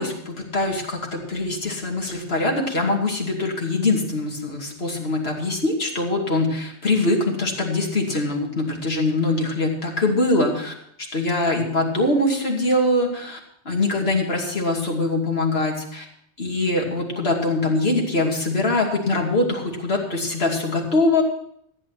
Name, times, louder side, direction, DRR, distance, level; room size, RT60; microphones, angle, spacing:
voice 1, 0.0-10.7 11.1-13.4 13.6-16.0 16.4-21.2, left 2 dB, 60° left, 0 dB, 2.8 m, -23 dB
15.0 x 9.2 x 5.8 m, 0.72 s
omnidirectional pair, 1.2 m